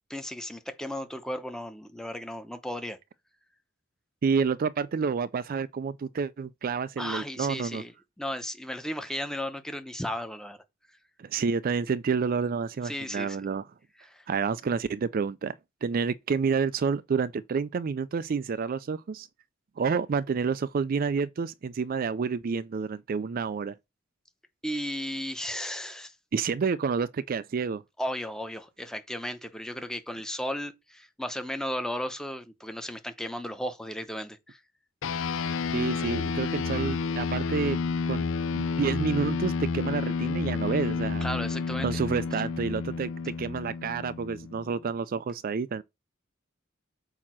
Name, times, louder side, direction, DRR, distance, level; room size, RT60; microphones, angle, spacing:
voice 1, 0.1-3.0 7.0-7.9 8.2-10.6 12.8-13.4 14.1-14.2 24.6-26.1 28.0-34.6 41.2-41.9, equal, 5° left, 0.8 m, -35 dB
voice 2, 4.2-7.8 11.2-13.7 14.3-15.5 15.8-19.3 19.8-23.7 26.3-27.8 35.7-37.8 38.1-38.2 38.6-41.3 41.8-45.8, right 5 dB, 45° right, 0.4 m, -29 dB
sound 1, 35.0-44.8, left 5 dB, 75° left, 0.4 m, -30 dB
8.5 x 2.9 x 6.1 m
head